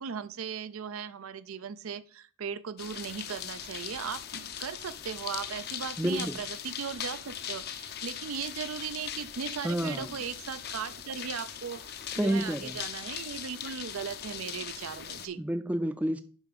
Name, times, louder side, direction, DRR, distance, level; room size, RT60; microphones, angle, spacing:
voice 1, 0.0-11.9 12.1-15.4, right 7 dB, 85° right, 14 dB, 0.5 m, -38 dB
sound 1, 2.8-15.3, left 9 dB, 50° left, 0.6 m, -40 dB
voice 2, 6.0-6.3 9.6-10.1 12.2-12.7 15.4-16.2, right 1 dB, 5° right, 10 dB, 0.4 m, -29 dB
7.0 x 5.5 x 4.1 m, 0.40 s
head